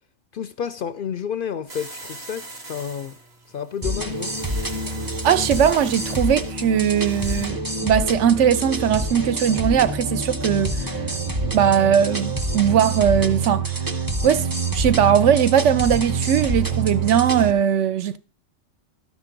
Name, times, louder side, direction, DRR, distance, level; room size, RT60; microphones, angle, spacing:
voice 1, 0.3-3.2 3.5-4.3, left 8 dB, 60° left, 0.5 m, -30 dB
sound 1, 1.7-7.5, right 2 dB, 55° right, 1.7 m, -41 dB
sound 2, 3.8-17.5, right 3 dB, 20° right, 0.7 m, -26 dB
voice 2, 5.2-10.7 11.5-13.7 14.2-14.5 14.7-18.2, right 8 dB, 70° right, 0.9 m, -19 dB
13.0 x 6.1 x 3.8 m
omnidirectional pair, 1.3 m